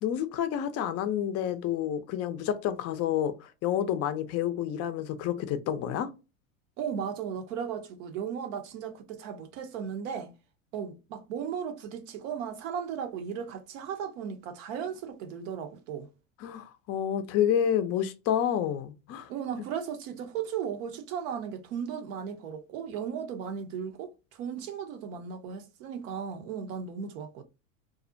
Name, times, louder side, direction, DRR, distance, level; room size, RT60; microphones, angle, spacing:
voice 1, 0.0-3.3 3.6-6.1 16.4-19.3, left 9 dB, 40° left, 0.4 m, -29 dB
voice 2, 6.8-10.3 10.7-16.1 19.3-27.4, right 7 dB, 65° right, 0.7 m, -36 dB
2.4 x 2.0 x 2.5 m
hypercardioid pair, 90°, 41 cm